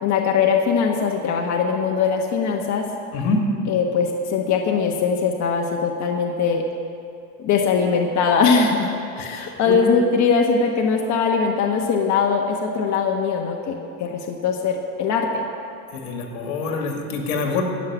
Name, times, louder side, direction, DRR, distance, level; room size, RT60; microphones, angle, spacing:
voice 1, 0.0-2.9 3.7-6.6 7.4-13.7 14.0-15.4, left 5 dB, 40° left, 2 dB, 1.3 m, -21 dB
voice 2, 3.1-3.4 9.4-9.8 15.9-17.6, left 4 dB, 75° left, 2 dB, 2.3 m, -25 dB
15.0 x 5.8 x 9.4 m, 2.5 s
supercardioid pair, 115°, 42 cm